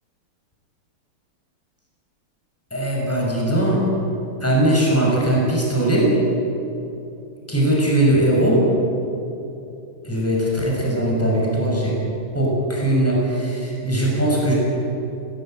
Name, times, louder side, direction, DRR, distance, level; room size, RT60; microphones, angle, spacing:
voice 1, 2.7-3.8 4.4-6.2 7.5-8.6 10.0-11.9 12.3-14.5, right 1 dB, 5° left, -3 dB, 6.5 m, -20 dB
25.5 x 17.5 x 9.2 m, 2.8 s
omnidirectional pair, 2.4 m